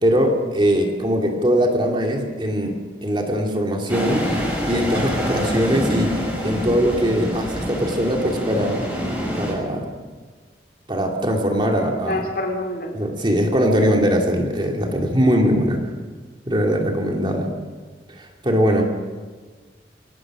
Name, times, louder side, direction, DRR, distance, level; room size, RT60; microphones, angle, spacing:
voice 1, 0.0-2.8 3.0-4.3 4.7-8.8 9.4-9.8 10.9-12.2 12.9-15.8 16.5-17.5 18.2-18.8, equal, 25° right, 1 dB, 2.7 m, -21 dB
sound 1, 3.9-9.5, equal, 5° right, 6.4 m, -26 dB
voice 2, 11.9-12.9, left 1 dB, 55° left, 2 dB, 3.1 m, -27 dB
24.5 x 17.5 x 6.2 m, 1.4 s
head